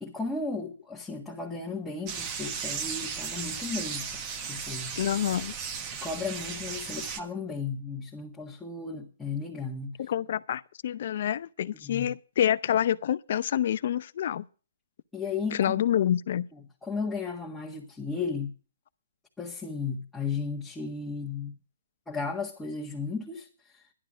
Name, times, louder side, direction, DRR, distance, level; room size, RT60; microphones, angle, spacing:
voice 1, 0.0-5.0 6.0-10.0 11.8-12.1 15.1-15.6 16.5-18.5 19.4-21.5 22.1-23.8, left 4 dB, 5° left, 1.7 m, -35 dB
sound 1, 2.1-7.2, right 6 dB, 30° right, 1.3 m, -35 dB
voice 2, 5.0-5.5 10.0-14.4 15.5-16.5, left 10 dB, 55° left, 0.6 m, -27 dB
11.5 x 11.0 x 5.1 m
hypercardioid pair, 140°, 0 cm